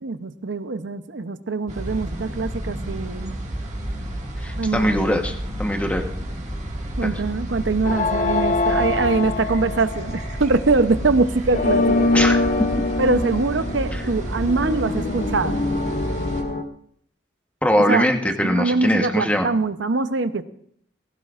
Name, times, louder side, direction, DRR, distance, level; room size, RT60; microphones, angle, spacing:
voice 1, 0.0-3.4 4.6-5.1 7.0-12.1 13.0-15.6 17.9-18.0 18.4-20.4, right 3 dB, 90° right, 12 dB, 0.8 m, -23 dB
sound 1, 1.7-16.4, right 1 dB, 40° right, 1.9 m, -31 dB
voice 2, 4.4-6.0 7.0-7.1 12.1-12.4 12.7-12.8 13.9-14.0 17.6-19.5, equal, 10° left, 4 dB, 1.1 m, -22 dB
sound 2, 7.8-10.3 11.5-16.6, left 2 dB, 45° left, 0.8 m, -24 dB
19.5 x 16.5 x 2.5 m, 0.64 s
head